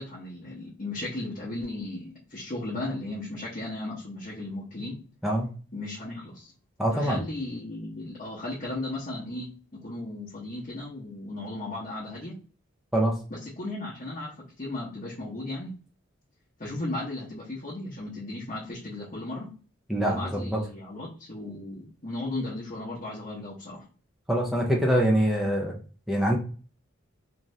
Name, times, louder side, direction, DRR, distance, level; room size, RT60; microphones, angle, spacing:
voice 1, 0.0-5.0 5.7-6.5 6.9-12.4 13.3-15.7 16.6-19.5 20.0-23.9, left 2 dB, 40° left, -6 dB, 0.8 m, -36 dB
voice 2, 6.8-7.2 12.9-13.1 19.9-20.6 24.3-25.7 26.1-26.4, right 1 dB, ahead, -2 dB, 0.5 m, -24 dB
2.6 x 2.4 x 3.1 m, 0.39 s
head